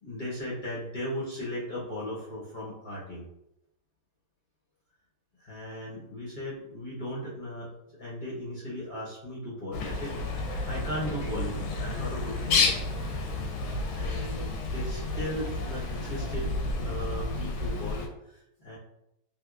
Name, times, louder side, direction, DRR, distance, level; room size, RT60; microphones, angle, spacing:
voice 1, 0.0-3.3 5.4-10.2 10.6-12.8 13.5-18.8, equal, 50° left, -8 dB, 0.6 m, -37 dB
Bird, 9.7-18.1, left 3 dB, 85° left, 1.4 m, -31 dB
3.5 x 2.9 x 2.4 m, 0.83 s
omnidirectional pair, 2.1 m